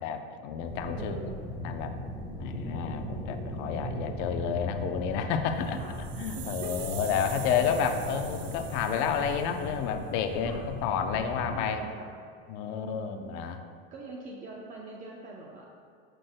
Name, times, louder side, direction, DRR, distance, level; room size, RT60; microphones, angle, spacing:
voice 1, 0.0-1.2 1.6-1.9 2.4-5.8 6.2-11.8 12.5-13.6, left 7 dB, 40° left, 7 dB, 0.6 m, -30 dB
sound 1, 0.6-11.6, equal, 5° right, 1.1 m, -38 dB
voice 2, 0.9-1.4 5.7-6.0 6.3-6.9 10.4-10.7 11.5-12.2 12.7-13.3 13.9-15.7, right 3 dB, 25° right, -2 dB, 0.7 m, -43 dB
sound 2, 5.6-9.8, right 9 dB, 80° right, 1.1 m, -45 dB
14.0 x 6.1 x 2.2 m, 2.4 s
supercardioid pair, 160°, 30 cm